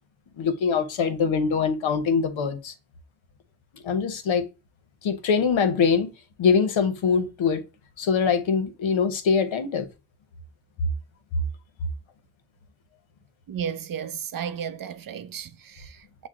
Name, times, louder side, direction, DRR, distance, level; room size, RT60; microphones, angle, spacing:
voice 1, 0.4-2.7 3.8-4.4 5.0-6.1 6.4-7.6 8.0-9.9, left 6 dB, 75° left, 0.9 m, -23 dB
voice 2, 13.5-16.3, right 8 dB, 50° right, 0.5 m, -34 dB
6.2 x 2.1 x 3.6 m
cardioid pair, 75°, 47 cm